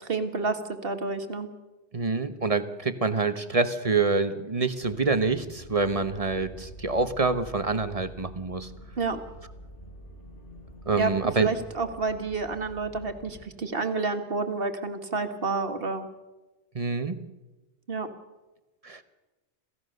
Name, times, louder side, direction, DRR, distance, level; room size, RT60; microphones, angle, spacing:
voice 1, 0.0-1.5 9.0-9.2 11.0-16.1 17.9-18.1, right 3 dB, 55° right, 8 dB, 1.9 m, -29 dB
voice 2, 1.9-8.7 10.9-11.5 16.7-17.2 18.8-19.0, right 4 dB, 35° right, 11 dB, 1.1 m, -26 dB
sound 1, 4.8-13.4, equal, 80° left, 6.4 m, -46 dB
27.5 x 16.0 x 6.6 m, 1.1 s
omnidirectional pair, 1.2 m